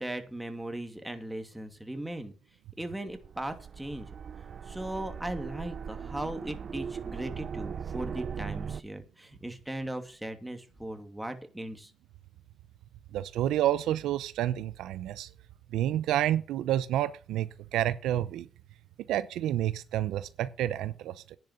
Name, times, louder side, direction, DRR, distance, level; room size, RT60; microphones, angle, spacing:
voice 1, 0.0-2.3 2.8-4.1 4.7-11.9, right 1 dB, 5° right, 2.5 m, -38 dB
sound 1, 3.1-8.8, right 7 dB, 50° right, 0.5 m, -39 dB
voice 2, 13.1-15.3 15.7-18.5 19.1-21.4, right 12 dB, 85° right, 0.7 m, -29 dB
10.5 x 6.5 x 8.1 m
cardioid pair, 90°, 0 cm